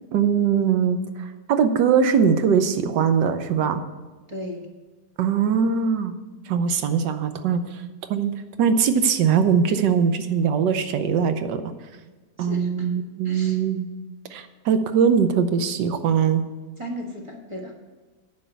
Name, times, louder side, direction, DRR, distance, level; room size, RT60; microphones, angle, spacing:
voice 1, 0.0-3.8 5.2-6.1 6.5-7.8 8.1-8.3 8.6-11.6 12.4-13.9 14.3-16.4, right 7 dB, 85° right, 9 dB, 1.5 m, -21 dB
voice 2, 4.3-4.7 12.4-12.9 13.2-13.6 16.8-17.7, equal, 20° right, 0 dB, 1.4 m, -35 dB
10.0 x 5.4 x 8.1 m, 1.3 s
omnidirectional pair, 1.8 m